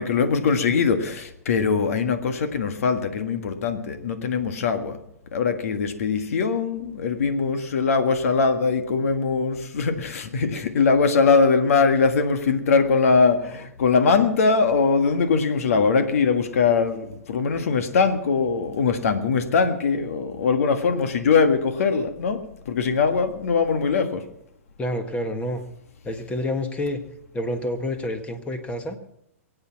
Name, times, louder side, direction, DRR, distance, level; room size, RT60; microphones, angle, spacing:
voice 1, 0.0-5.0 5.3-24.2, left 5 dB, 75° left, 8 dB, 1.7 m, -21 dB
voice 2, 24.8-25.6 26.0-27.0 27.3-29.0, left 1 dB, 15° left, 8 dB, 1.6 m, -28 dB
23.0 x 8.8 x 6.0 m, 0.78 s
hypercardioid pair, 125°, 8 cm